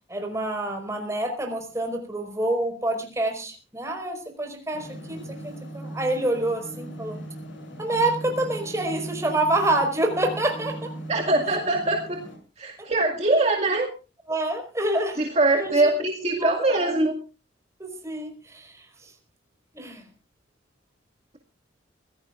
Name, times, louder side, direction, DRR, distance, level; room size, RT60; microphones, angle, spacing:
voice 1, 0.1-7.2 7.8-10.9 12.8-12.9 14.3-15.2 15.5-15.9 16.3-17.0 17.8-19.1 19.7-20.0, right 2 dB, 15° right, 4 dB, 4.7 m, -27 dB
sound 1, 4.7-12.4, right 1 dB, 85° left, 7.3 m, -38 dB
voice 2, 11.1-12.2 12.6-13.9 15.2-17.1, right 2 dB, 35° right, 2 dB, 2.1 m, -22 dB
24.0 x 16.5 x 2.5 m, 0.34 s
head